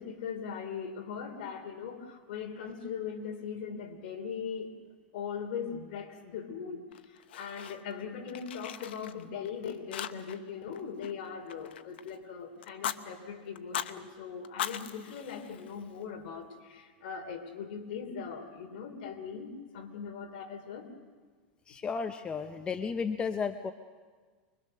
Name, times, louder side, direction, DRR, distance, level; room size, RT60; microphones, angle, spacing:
voice 1, 0.0-4.7 5.1-20.9, left 6 dB, 65° left, 4 dB, 3.4 m, -40 dB
Fire, 6.9-8.0 8.3-9.5 9.9-10.5 10.7-12.1 12.6-13.0 13.5-13.9 14.4-16.0, left 10 dB, 85° left, 0.9 m, -39 dB
voice 2, 21.7-23.7, left 5 dB, 20° left, 8 dB, 0.8 m, -33 dB
25.0 x 22.5 x 6.5 m, 1.5 s
supercardioid pair, 140°, 6 cm